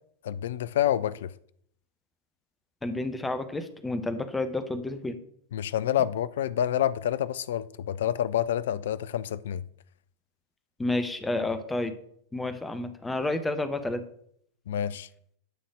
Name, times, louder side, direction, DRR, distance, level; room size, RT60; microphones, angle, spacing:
voice 1, 0.2-1.3 5.5-9.6 14.7-15.1, left 10 dB, 60° left, 0.4 m, -28 dB
voice 2, 2.8-5.2 10.8-12.0 12.3-14.0, left 2 dB, 10° left, 0.9 m, -30 dB
11.0 x 4.2 x 6.1 m
figure-of-eight pair, 90°, 0 cm